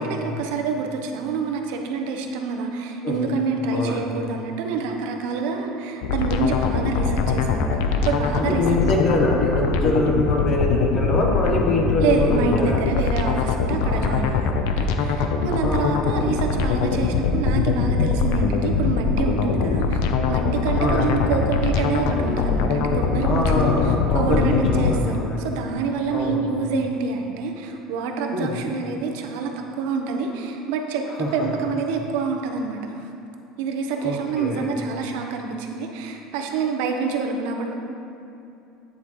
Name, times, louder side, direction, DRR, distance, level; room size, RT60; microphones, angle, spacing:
voice 1, 0.0-7.7 8.0-8.7 12.0-20.0 20.3-32.9 33.6-37.7, right 5 dB, 75° right, 3 dB, 0.8 m, -27 dB
voice 2, 3.0-3.3 3.7-4.0 8.4-12.8 13.8-14.1 15.6-16.0 19.5-19.8 20.8-21.2 23.2-25.5 26.1-26.5 28.3-28.6 31.2-31.3 34.0-34.7, left 2 dB, 30° left, 0 dB, 1.0 m, -24 dB
sound 1, 6.0-24.9, left 5 dB, 75° left, 0.6 m, -22 dB
8.9 x 7.9 x 3.0 m, 2.8 s
cardioid pair, 170°, 0 cm